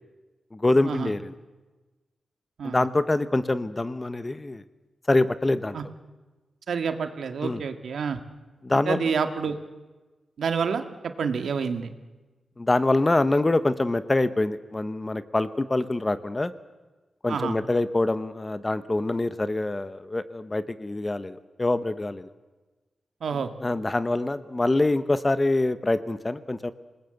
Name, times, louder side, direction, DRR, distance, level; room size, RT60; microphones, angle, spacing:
voice 1, 0.5-1.3 2.6-4.6 5.1-5.8 7.4-7.6 8.6-9.1 12.6-16.5 17.2-22.3 23.3-26.7, left 2 dB, 20° left, 13 dB, 0.9 m, -25 dB
voice 2, 6.7-8.2 8.9-9.5 10.4-10.8 11.2-11.9 17.3-17.5 23.2-23.5, right 6 dB, 80° right, 7 dB, 1.9 m, -28 dB
27.5 x 20.0 x 7.9 m, 1.2 s
wide cardioid pair, 150°, 0 cm